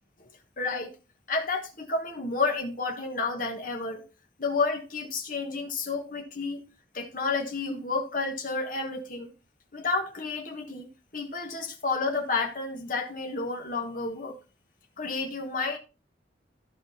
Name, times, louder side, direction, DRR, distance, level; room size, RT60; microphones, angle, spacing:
voice 1, 0.6-0.9 1.3-4.1 4.4-6.6 6.9-9.3 9.7-10.9 11.1-14.4 15.0-15.8, left 4 dB, 50° left, 1.4 m, -30 dB
12.5 x 5.0 x 4.2 m
head